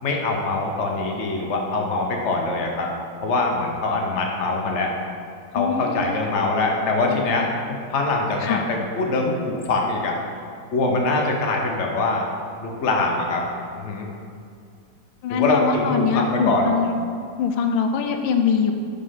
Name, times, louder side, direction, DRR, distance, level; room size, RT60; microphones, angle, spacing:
voice 1, 0.0-2.9 3.2-4.9 5.5-10.2 10.7-12.3 12.6-13.5 13.8-14.1 15.3-16.7, left 3 dB, 60° left, 0 dB, 0.7 m, -23 dB
voice 2, 5.5-6.1 7.1-7.2 8.4-8.6 15.2-17.0 17.4-18.7, left 6 dB, 75° left, 5 dB, 1.3 m, -23 dB
5.2 x 5.1 x 5.6 m, 2.2 s
omnidirectional pair, 2.2 m